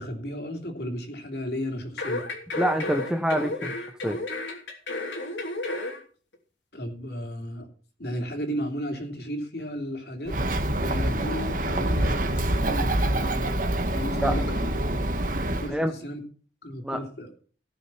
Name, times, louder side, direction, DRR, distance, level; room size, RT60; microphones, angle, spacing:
voice 1, 0.0-2.3 6.7-7.7 8.0-10.4 10.8-13.5 13.9-14.7 15.6-16.2 16.6-17.3, equal, 60° left, 4 dB, 3.1 m, -34 dB
sound 1, 2.0-6.0 6.3-6.4, left 2 dB, 85° left, 3.1 m, -32 dB
voice 2, 2.5-3.8 4.0-4.2 14.2-14.4 15.7-15.9 16.8-17.0, equal, 5° right, 7 dB, 0.9 m, -26 dB
Bird, 10.3-15.7, right 1 dB, 50° right, 1.5 m, -26 dB
17.5 x 6.4 x 5.8 m, 0.41 s
head